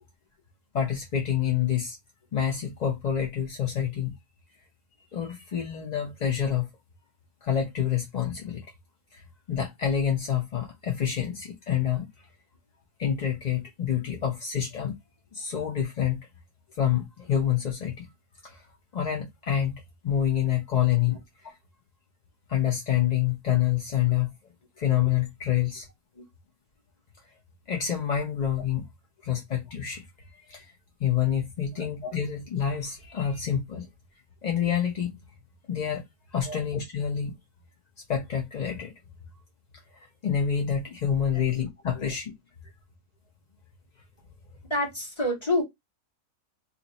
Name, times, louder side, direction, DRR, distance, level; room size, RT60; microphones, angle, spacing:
voice 1, 0.7-2.0 2.3-4.1 5.1-6.7 7.4-8.6 9.1-9.2 9.5-12.1 13.0-15.0 15.3-16.2 16.8-18.1 18.4-18.6 18.9-19.7 20.0-21.2 21.4-21.5 22.5-24.3 24.8-25.9 27.7-28.8 29.2-30.1 30.3-30.6 31.0-33.9 34.4-35.1 35.7-36.0 36.3-37.3 38.1-38.9 39.9-42.3, left 9 dB, 45° left, 0.5 m, -27 dB
voice 2, 44.7-45.6, left 1 dB, 20° left, 1.3 m, -28 dB
2.8 x 2.6 x 3.9 m
omnidirectional pair, 1.6 m